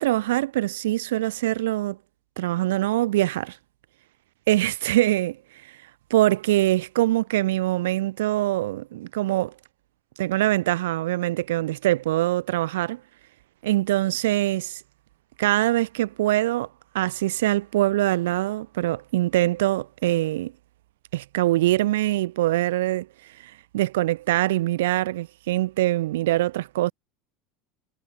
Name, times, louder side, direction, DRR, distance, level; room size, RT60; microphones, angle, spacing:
voice 1, 0.0-2.0 2.4-3.6 4.5-5.8 6.1-9.5 10.2-13.0 13.6-14.8 15.4-16.7 16.9-20.5 21.1-26.9, right 16 dB, 80° right, 0.4 m, -23 dB
hypercardioid pair, 95°, 0 cm